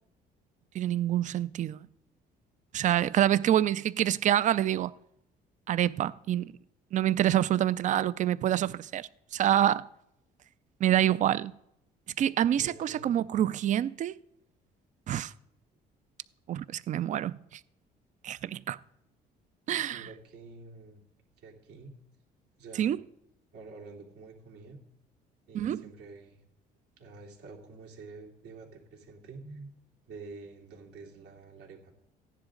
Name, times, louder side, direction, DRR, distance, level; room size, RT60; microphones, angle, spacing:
voice 1, 0.7-1.9 2.7-4.9 5.7-6.5 6.9-9.9 10.8-11.5 12.2-14.2 15.1-15.3 16.5-17.6 18.2-18.8 19.7-20.1 22.8-23.0 25.5-25.8, right 11 dB, 45° right, 0.4 m, -27 dB
voice 2, 12.5-13.2 19.9-21.0 21.4-21.9 22.6-22.9 23.5-24.8 25.5-26.4 27.0-29.7 30.1-31.9, right 3 dB, 75° right, 3.0 m, -48 dB
15.5 x 10.0 x 3.9 m
cardioid pair, 110°, 17 cm